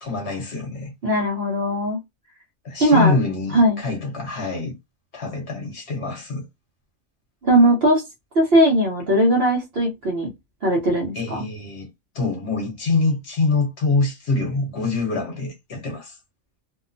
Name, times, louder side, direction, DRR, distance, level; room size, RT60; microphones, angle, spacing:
voice 1, 0.0-0.9 2.6-4.7 5.1-6.4 11.1-11.9 12.1-16.2, left 3 dB, 55° left, 1.2 m, -25 dB
voice 2, 1.0-2.0 2.8-3.2 3.5-3.8 7.4-8.0 8.3-10.3 10.6-11.4, right 1 dB, 50° right, 0.9 m, -18 dB
2.8 x 2.0 x 2.5 m
omnidirectional pair, 1.4 m